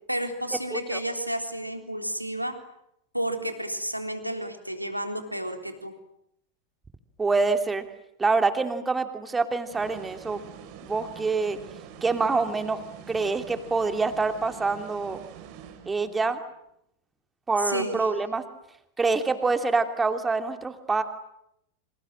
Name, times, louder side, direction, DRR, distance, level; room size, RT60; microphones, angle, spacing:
voice 1, 0.1-2.6 3.1-5.9 17.6-18.1, right 1 dB, 90° right, 5 dB, 3.8 m, -31 dB
voice 2, 7.2-7.8 8.2-10.4 10.8-11.6 12.0-12.8 13.1-15.2 15.9-16.4 17.5-18.4 19.0-21.0, right 4 dB, 15° right, 7 dB, 2.9 m, -26 dB
sound 1, 9.7-16.3, right 8 dB, 45° right, 3.9 m, -45 dB
28.5 x 26.5 x 7.6 m, 0.78 s
figure-of-eight pair, 90°, 0 cm